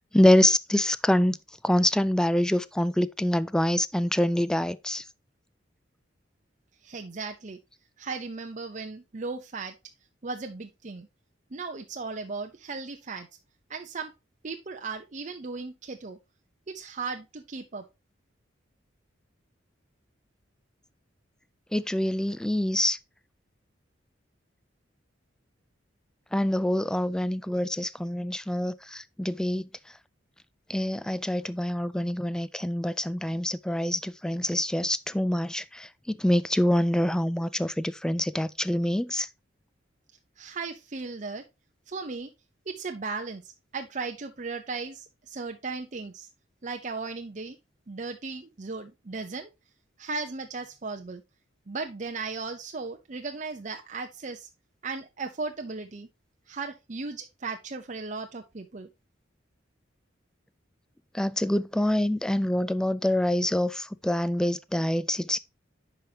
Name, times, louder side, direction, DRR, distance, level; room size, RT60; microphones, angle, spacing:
voice 1, 0.1-1.4 1.6-5.0 21.7-23.0 26.3-29.7 30.7-35.9 36.1-39.3 61.1-65.4, left 1 dB, 5° left, 0.3 m, -25 dB
voice 2, 6.8-7.6 8.0-9.7 10.2-11.1 11.5-13.3 13.7-14.1 14.4-16.2 16.7-17.8 40.4-41.4 41.9-42.3 42.7-46.3 46.6-47.6 47.9-49.5 50.0-51.2 51.7-54.5 54.8-56.1 56.5-58.9, right 4 dB, 40° right, 0.7 m, -36 dB
10.0 x 5.1 x 2.8 m
head